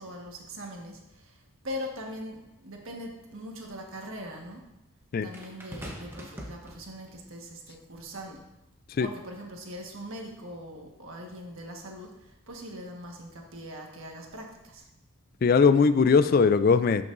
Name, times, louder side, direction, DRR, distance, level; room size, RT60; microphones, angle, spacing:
voice 1, 0.0-4.6 5.2-8.4 9.0-14.8, equal, 70° right, 1 dB, 1.4 m, -41 dB
sound 1, 2.4-2.5 5.3-7.2 8.1-8.4, equal, 10° right, 0.9 m, -43 dB
voice 2, 15.4-17.0, left 5 dB, 40° left, 12 dB, 0.3 m, -20 dB
12.0 x 6.0 x 2.6 m, 0.96 s
head